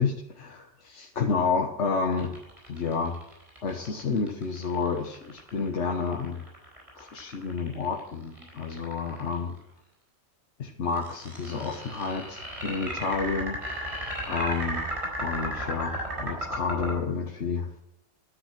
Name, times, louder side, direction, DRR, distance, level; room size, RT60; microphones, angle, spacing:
voice 1, 0.0-2.3 2.7-3.2 3.6-6.4 7.0-9.5 10.6-13.6 14.2-14.8 15.2-17.7, left 5 dB, 80° left, 1 dB, 1.5 m, -30 dB
sound 1, 2.1-9.4 10.9-16.9, right 1 dB, 30° right, 4.6 m, -35 dB
13.0 x 9.4 x 5.9 m, 0.83 s
omnidirectional pair, 1.2 m